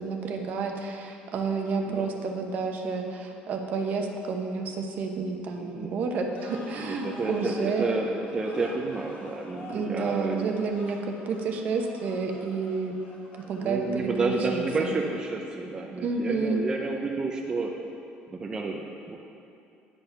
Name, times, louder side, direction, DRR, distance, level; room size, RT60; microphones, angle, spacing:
voice 1, 0.0-7.9 9.7-12.9 13.3-14.9 15.9-16.6, right 4 dB, 50° right, 3 dB, 0.9 m, -30 dB
voice 2, 5.5-5.9 6.8-10.5 13.4-17.7 18.3-19.2, right 3 dB, 20° right, 0 dB, 0.6 m, -30 dB
sound 1, 6.3-14.2, left 2 dB, 50° left, 1.9 m, -48 dB
9.9 x 5.7 x 5.7 m, 2.6 s
cardioid pair, 140°, 3 cm